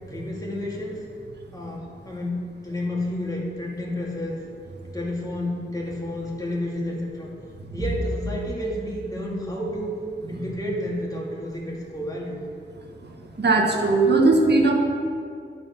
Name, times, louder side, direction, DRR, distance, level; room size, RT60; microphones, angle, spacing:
voice 1, 0.1-1.0 1.5-4.4 4.9-7.3 7.7-9.9 10.3-12.4, left 1 dB, 20° left, -3 dB, 2.5 m, -30 dB
voice 2, 13.4-14.7, right 3 dB, 60° right, 2 dB, 1.6 m, -19 dB
9.7 x 5.3 x 5.9 m, 2.3 s
cardioid pair, 45°, 20 cm